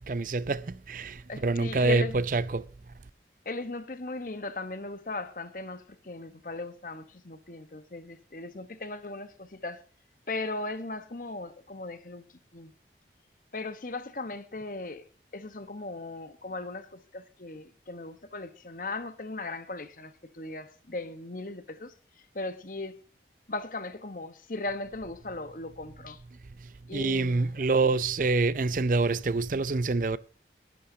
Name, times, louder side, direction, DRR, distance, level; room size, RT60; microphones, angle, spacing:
voice 1, 0.1-2.7 26.6-30.2, right 3 dB, 45° right, 0.5 m, -26 dB
voice 2, 1.3-2.2 3.4-9.8 10.3-12.2 12.5-12.7 13.5-15.1 15.3-21.9 22.3-22.9 23.5-26.2 26.9-27.9, left 2 dB, 50° left, 1.2 m, -38 dB
20.0 x 11.5 x 2.8 m
head